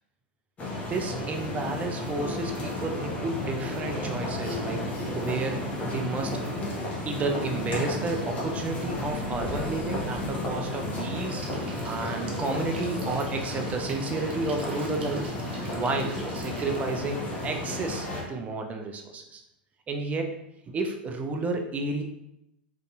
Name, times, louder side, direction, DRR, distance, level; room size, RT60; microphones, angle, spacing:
sound 1, 0.6-18.2, left 1 dB, 25° left, 0.8 m, -33 dB
voice 1, 0.9-6.4 7.0-11.5 11.8-15.3 15.7-19.4 19.9-20.3 20.7-22.0, right 3 dB, 25° right, 4 dB, 0.4 m, -31 dB
sound 2, 11.4-16.8, right 3 dB, 70° right, 0.6 m, -45 dB
2.6 x 2.6 x 2.2 m, 0.87 s
hypercardioid pair, 95°, 6 cm